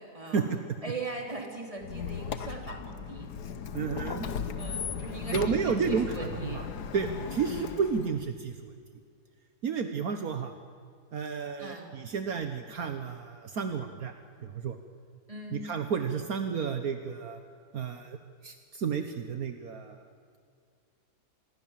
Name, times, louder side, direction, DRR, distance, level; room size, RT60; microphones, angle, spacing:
voice 1, 0.0-3.3 4.5-6.7 7.3-7.5 11.6-11.9 15.3-15.7, right 2 dB, 20° right, 2 dB, 3.9 m, -40 dB
Squeak, 1.8-8.2, left 6 dB, 85° left, 1.7 m, -37 dB
voice 2, 3.7-4.3 5.3-6.7 6.9-8.7 9.6-10.5 11.1-14.1 14.4-14.8 15.5-17.4 17.7-18.2 18.4-20.0, right 6 dB, 65° right, 8 dB, 1.6 m, -31 dB
26.5 x 22.0 x 7.6 m, 2.3 s
omnidirectional pair, 1.7 m